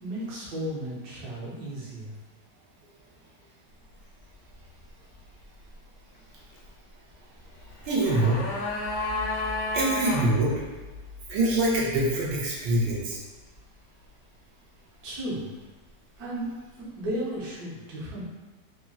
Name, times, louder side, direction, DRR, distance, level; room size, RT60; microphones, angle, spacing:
voice 1, 0.0-2.2 2.9-3.0 15.0-15.5 16.2-18.2, right 1 dB, 65° right, -7 dB, 1.2 m, -34 dB
sound 1, 7.7-10.3 10.6-10.7, left 2 dB, 70° left, 0.8 m, -31 dB
voice 2, 7.9-8.4 9.7-10.5 11.3-13.2, right 2 dB, 90° right, -5 dB, 1.3 m, -24 dB
3.8 x 2.1 x 2.2 m, 1.2 s
omnidirectional pair, 1.9 m